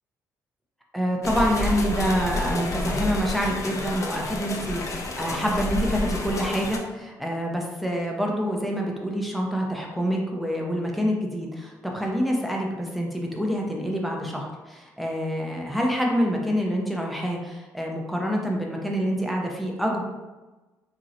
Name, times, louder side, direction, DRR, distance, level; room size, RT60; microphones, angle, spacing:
voice 1, 0.9-20.0, equal, ahead, -1 dB, 0.7 m, -27 dB
sound 1, 1.2-6.8, left 2 dB, 45° left, 0.5 m, -29 dB
2.9 x 2.8 x 2.5 m, 1.2 s
supercardioid pair, 65°, 7 cm